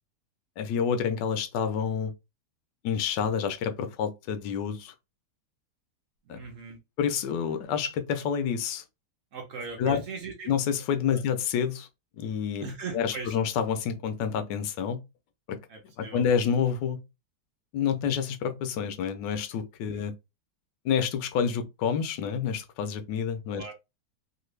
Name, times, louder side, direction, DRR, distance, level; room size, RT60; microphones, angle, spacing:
voice 1, 0.6-2.1 2.8-4.9 6.3-6.4 7.0-8.8 9.8-10.0 10.5-11.9 12.2-15.0 15.5-15.6 16.0-17.0 17.7-20.1 20.8-23.7, left 7 dB, 90° left, 1.3 m, -28 dB
voice 2, 6.3-6.8 9.3-10.5 11.1-11.2 12.6-13.4 15.7-16.2 19.9-20.0 23.5-23.7, right 4 dB, 60° right, 0.9 m, -39 dB
3.2 x 2.4 x 3.1 m
omnidirectional pair, 1.8 m